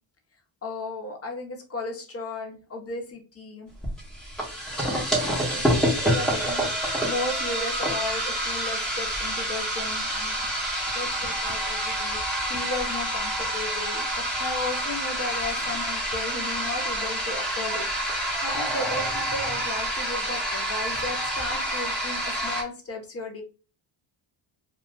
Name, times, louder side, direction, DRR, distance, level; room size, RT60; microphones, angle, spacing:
voice 1, 0.6-3.7 4.9-10.5 10.9-12.2 12.5-23.4, left 2 dB, 30° left, 2 dB, 0.9 m, -35 dB
sound 1, 3.8-22.6, right 1 dB, ahead, 1.0 m, -28 dB
2.5 x 2.3 x 3.5 m, 0.34 s
cardioid pair, 100°, 48 cm